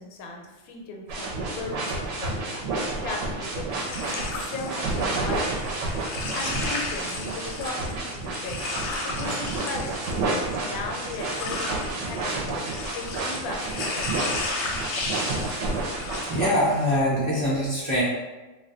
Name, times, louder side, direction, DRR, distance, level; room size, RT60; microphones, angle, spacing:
voice 1, 0.0-2.8 3.0-5.7 6.3-8.6 9.2-10.1 10.6-14.5, left 3 dB, 90° left, 1 dB, 1.0 m, -37 dB
sound 1, 1.1-16.5, right 2 dB, 70° right, 0.9 m, -30 dB
sound 2, 3.7-17.0, left 3 dB, 65° left, 0.7 m, -35 dB
voice 2, 16.3-18.0, left 1 dB, 25° right, -9 dB, 0.7 m, -23 dB
2.5 x 2.2 x 3.7 m, 1.2 s
omnidirectional pair, 1.5 m